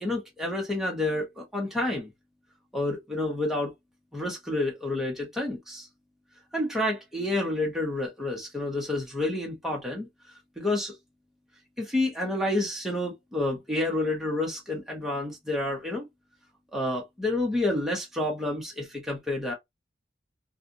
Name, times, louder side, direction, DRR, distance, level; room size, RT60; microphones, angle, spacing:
voice 1, 0.0-2.1 2.7-3.7 4.1-5.9 6.5-10.1 10.6-10.9 11.8-16.1 16.7-19.5, left 2 dB, ahead, 1.1 m, -29 dB
3.2 x 2.5 x 2.7 m
head